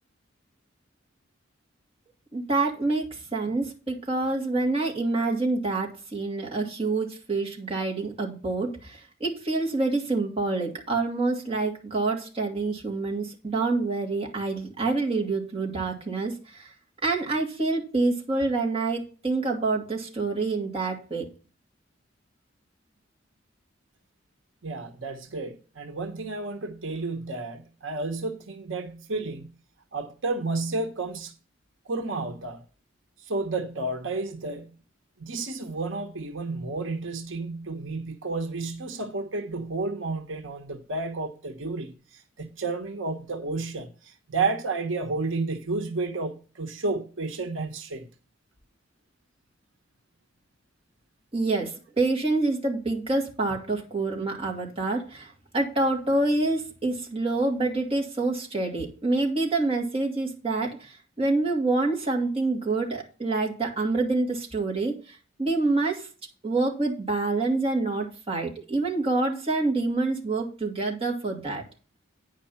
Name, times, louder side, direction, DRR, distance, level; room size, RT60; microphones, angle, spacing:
voice 1, 2.3-16.7 17.0-21.2 51.3-66.1 66.4-71.6, right 3 dB, 30° right, 2.5 m, -27 dB
voice 2, 24.6-29.5 29.9-31.3 31.9-32.6 33.3-34.8 35.2-41.9 42.4-48.1, right 3 dB, 90° right, 1.2 m, -31 dB
9.7 x 5.2 x 5.7 m
head